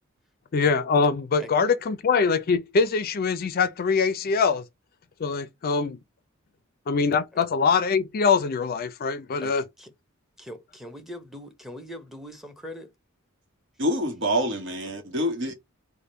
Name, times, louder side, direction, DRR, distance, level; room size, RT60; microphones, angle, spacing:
voice 1, 0.5-4.6 5.2-6.0 6.9-9.6, left 5 dB, 45° left, 0.4 m, -23 dB
voice 2, 9.4-9.9 10.4-12.9 15.5-15.6, left 1 dB, ahead, 0.8 m, -41 dB
voice 3, 13.8-15.5, equal, 60° right, 1.1 m, -26 dB
3.5 x 2.2 x 4.2 m
head